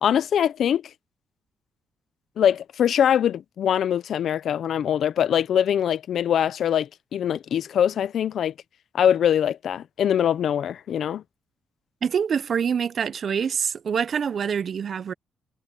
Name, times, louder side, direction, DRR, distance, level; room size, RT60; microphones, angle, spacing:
voice 1, 0.0-0.8 2.4-8.5 8.9-11.2, left 9 dB, 70° left, 0.7 m, -23 dB
voice 2, 12.0-15.1, right 7 dB, 55° right, 0.6 m, -25 dB
cardioid pair, 105°, 0 cm